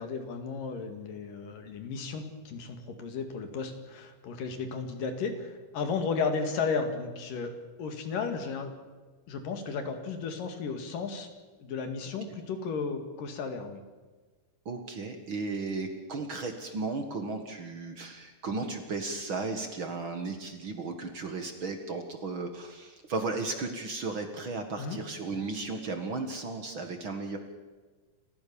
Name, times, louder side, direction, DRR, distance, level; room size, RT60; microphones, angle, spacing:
voice 1, 0.0-7.5 7.8-8.8 9.3-11.3 11.6-13.8 24.8-25.0, left 5 dB, 80° left, 7 dB, 3.9 m, -34 dB
voice 2, 14.7-27.4, right 3 dB, 45° right, 6 dB, 2.1 m, -35 dB
29.5 x 15.0 x 7.0 m, 1.3 s
omnidirectional pair, 3.8 m